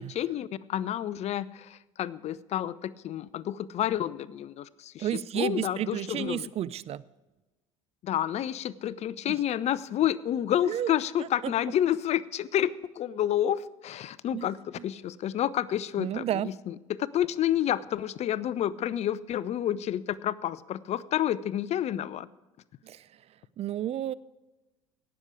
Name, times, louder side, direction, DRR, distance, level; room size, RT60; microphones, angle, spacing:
voice 1, 0.0-5.1 5.3-6.5 8.0-22.3, left 11 dB, 40° left, 19 dB, 0.5 m, -29 dB
voice 2, 5.0-7.0 9.3-9.4 10.6-10.9 11.2-11.5 14.3-14.5 14.8-14.9 16.0-16.6 22.8-23.1 23.6-24.1, right 11 dB, 40° right, 18 dB, 0.4 m, -32 dB
17.5 x 6.9 x 4.9 m, 1.1 s
hypercardioid pair, 65°, 17 cm